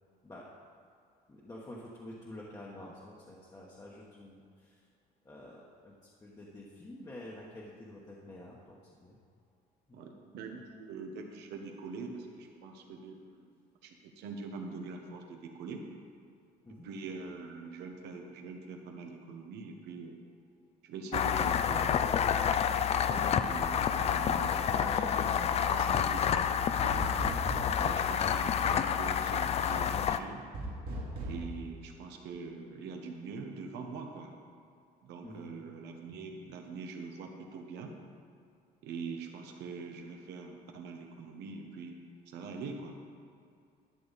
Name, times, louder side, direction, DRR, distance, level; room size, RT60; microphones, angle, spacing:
voice 1, 1.3-4.8 5.2-9.2 9.9-10.0 16.6-16.9 35.2-35.5, left 1 dB, 20° left, -5 dB, 1.2 m, -49 dB
voice 2, 9.9-13.5 13.8-15.8 16.8-20.2 20.8-22.2 23.1-27.0 27.8-30.4 31.2-34.4 35.0-37.9 38.8-42.0 42.3-43.0, right 4 dB, 85° right, 3 dB, 1.2 m, -43 dB
sound 1, 21.1-30.2, left 8 dB, 40° left, 0.4 m, -29 dB
sound 2, 26.9-27.9 30.5-31.5, right 1 dB, 60° right, 2.1 m, -37 dB
12.0 x 6.8 x 4.1 m, 2.3 s
cardioid pair, 110°, 17 cm